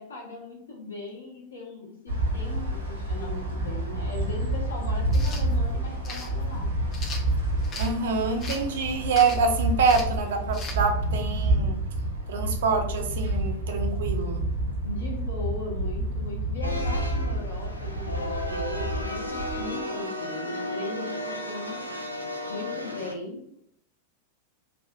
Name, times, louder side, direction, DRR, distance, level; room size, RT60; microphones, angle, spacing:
voice 1, 0.0-6.7 14.8-21.8 22.5-23.4, left 2 dB, 70° left, -2 dB, 0.9 m, -38 dB
sound 1, 2.1-19.6, right 1 dB, 80° right, 0.8 m, -29 dB
sound 2, 5.1-5.4 6.0-6.3 6.9-7.9 8.4-8.7 9.1-9.5 9.8-10.2 10.5-10.8, left 3 dB, 30° left, 0.5 m, -38 dB
voice 2, 7.8-11.8 12.3-14.5, right 4 dB, 60° right, 5 dB, 0.4 m, -26 dB
sound 3, 16.6-23.1, left 1 dB, 85° left, 0.4 m, -34 dB
3.4 x 2.4 x 2.3 m, 0.72 s
figure-of-eight pair, 90°, 0 cm